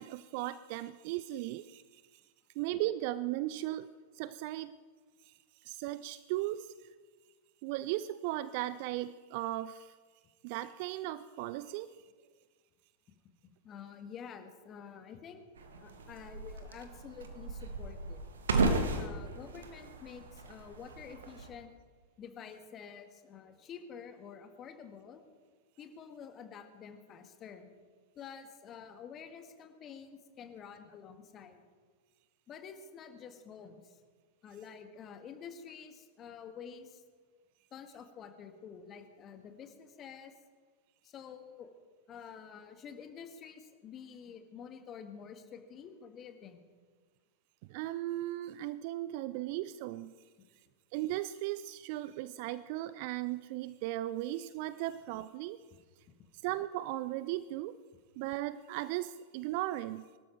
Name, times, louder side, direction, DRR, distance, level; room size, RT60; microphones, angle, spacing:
voice 1, 0.0-2.2 2.6-4.8 5.2-5.3 5.6-6.9 7.6-9.9 10.4-11.9 47.7-50.1 50.9-55.6 56.4-57.8 58.2-60.1, right 15 dB, 45° right, 16 dB, 0.4 m, -37 dB
voice 2, 13.4-15.4 15.8-18.2 18.6-21.7 22.2-25.2 25.8-27.7 28.2-31.6 32.5-34.0 34.4-37.0 37.7-40.3 41.0-41.7 42.1-46.6 50.4-50.5 55.7-55.8, left 7 dB, 30° left, 7 dB, 1.8 m, -49 dB
sound 1, 15.6-21.5, right 3 dB, 65° right, 1.8 m, -35 dB
24.0 x 12.5 x 4.7 m, 1.5 s
figure-of-eight pair, 90°, 0 cm